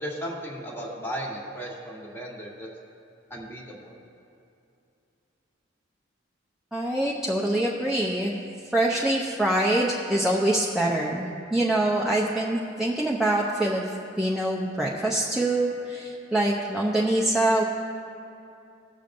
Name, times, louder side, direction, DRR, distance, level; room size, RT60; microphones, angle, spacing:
voice 1, 0.0-2.7 3.3-4.0, equal, 10° left, -2 dB, 1.4 m, -35 dB
voice 2, 6.7-8.3 8.7-13.8 14.2-17.6, right 1 dB, 5° right, -4 dB, 0.6 m, -24 dB
18.0 x 6.9 x 2.6 m, 2.6 s
head